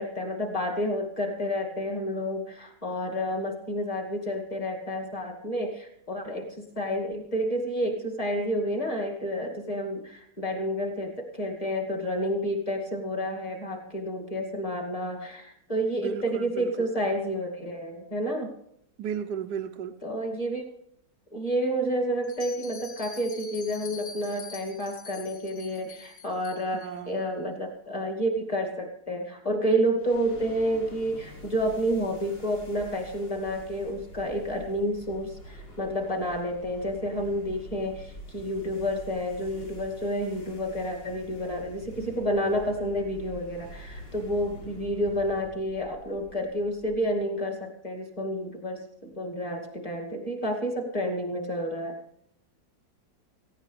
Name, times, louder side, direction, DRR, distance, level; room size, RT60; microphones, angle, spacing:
voice 1, 0.0-18.5 20.0-20.6 21.3-52.0, equal, 20° left, 1 dB, 2.3 m, -30 dB
voice 2, 16.0-16.9 19.0-20.0 26.7-27.2, right 7 dB, 70° right, 5 dB, 1.2 m, -35 dB
Bell, 22.2-26.9, left 6 dB, 50° left, 1.7 m, -45 dB
sound 1, 30.0-47.3, equal, 80° left, 4.1 m, -46 dB
17.5 x 15.5 x 3.3 m, 0.71 s
omnidirectional pair, 2.0 m